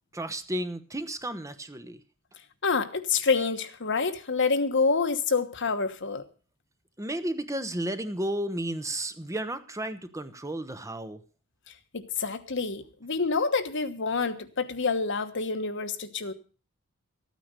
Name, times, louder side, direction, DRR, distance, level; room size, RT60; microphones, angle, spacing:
voice 1, 0.1-2.0 7.0-11.2, right 1 dB, 15° right, 10 dB, 0.8 m, -33 dB
voice 2, 2.6-6.3 11.9-16.3, left 4 dB, 60° left, 9 dB, 1.2 m, -27 dB
13.5 x 9.3 x 6.6 m, 0.37 s
head